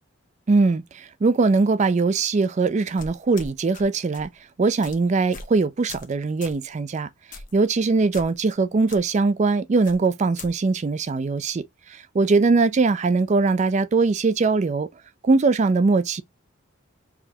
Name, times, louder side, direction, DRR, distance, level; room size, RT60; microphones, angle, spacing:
voice 1, 0.5-4.3 4.6-14.9 15.2-16.2, right 3 dB, 35° right, 0.3 m, -21 dB
sound 1, 3.0-3.8 4.1-4.3 4.8-5.0 5.3-5.6 5.9-6.1 6.4-6.6 7.3-7.6 8.1-8.6 8.9-9.0 9.8-10.5, left 4 dB, 40° left, 1.1 m, -40 dB
4.8 x 3.3 x 2.7 m
head